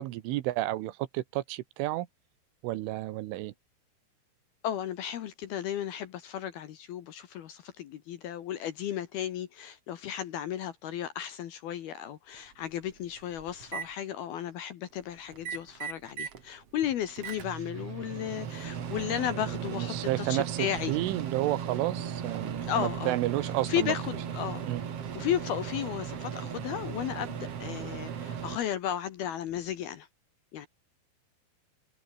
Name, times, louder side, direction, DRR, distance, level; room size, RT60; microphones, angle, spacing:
voice 1, 0.0-2.1 2.6-3.5 19.7-23.9 24.7-24.8, right 16 dB, 80° right, 3.4 m, -31 dB
voice 2, 4.6-21.0 22.6-23.2 23.6-24.7 25.1-30.1 30.5-30.7, left 10 dB, 65° left, 2.7 m, -34 dB
Microwave oven, 12.3-12.4 12.9-13.9 15.3-16.4 16.8-28.6, right 8 dB, 55° right, 1.7 m, -37 dB
omnidirectional pair, 5.8 m